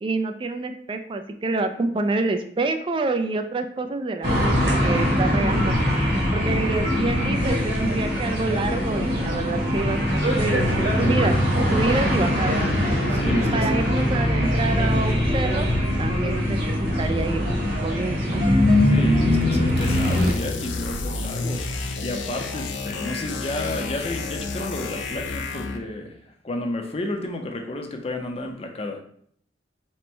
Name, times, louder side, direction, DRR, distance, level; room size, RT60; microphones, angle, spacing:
voice 1, 0.0-5.8 6.3-11.4 11.7-12.6 13.3-15.7 16.0-18.4, right 3 dB, 30° right, 7 dB, 0.3 m, -27 dB
sound 1, 4.2-20.3, left 1 dB, 60° right, 1.2 m, -22 dB
voice 2, 13.1-13.7 18.8-29.0, left 2 dB, 35° left, 3 dB, 0.5 m, -32 dB
sound 2, 19.8-25.9, left 3 dB, 90° left, 0.5 m, -31 dB
4.3 x 2.1 x 4.3 m, 0.62 s
head